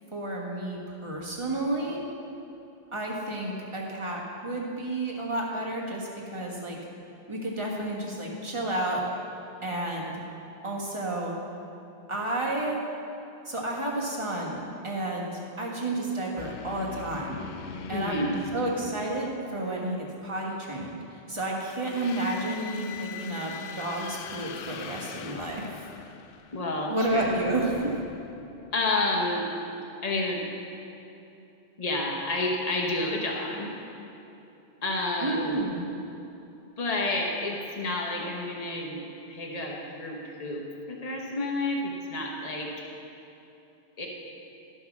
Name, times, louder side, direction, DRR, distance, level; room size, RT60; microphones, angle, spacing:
voice 1, 0.1-2.0 2.9-6.8 7.3-9.0 9.6-10.2 10.6-11.3 12.1-12.8 13.4-17.4 17.9-18.2 18.5-21.0 21.3-25.7 26.9-27.9 35.2-35.9, right 1 dB, 30° right, -3 dB, 1.5 m, -31 dB
sound 1, 16.4-19.7 21.7-29.0, left 7 dB, 65° left, 0.7 m, -42 dB
voice 2, 17.9-18.4 22.3-22.4 26.5-27.3 28.7-29.4 30.0-30.4 31.8-33.7 34.8-35.7 36.8-39.0 39.3-42.7 44.0-44.1, left 2 dB, 40° left, -1 dB, 1.3 m, -30 dB
12.5 x 6.2 x 5.9 m, 2.9 s
omnidirectional pair, 1.0 m